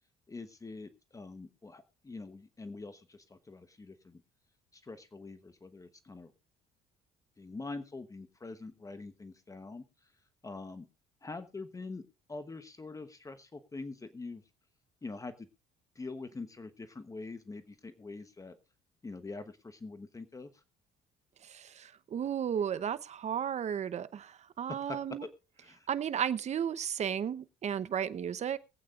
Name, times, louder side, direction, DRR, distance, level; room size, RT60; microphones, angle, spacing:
voice 1, 0.3-4.2 4.7-6.3 7.4-9.8 10.4-10.9 11.2-12.0 12.3-14.4 15.0-15.5 15.9-18.6 19.0-20.6 24.7-25.0 25.6-25.9, left 3 dB, 20° left, 1.1 m, -44 dB
voice 2, 21.4-25.2 25.9-28.6, right 8 dB, 40° right, 0.8 m, -34 dB
23.0 x 8.6 x 2.5 m
cardioid pair, 110°, 17 cm